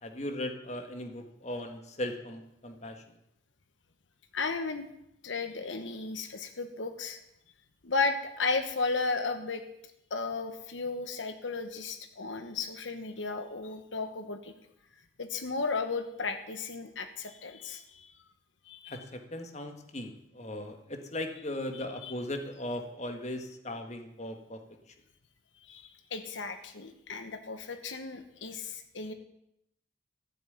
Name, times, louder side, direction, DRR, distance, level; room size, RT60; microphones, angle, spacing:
voice 1, 0.0-3.0 18.9-24.6, left 1 dB, 40° left, 5 dB, 1.7 m, -38 dB
voice 2, 4.3-4.9 5.2-7.2 7.8-9.6 10.1-14.5 15.2-18.1 18.7-19.0 21.7-22.1 25.7-29.1, left 4 dB, 90° left, 8 dB, 1.2 m, -34 dB
14.5 x 7.6 x 9.4 m, 0.81 s
head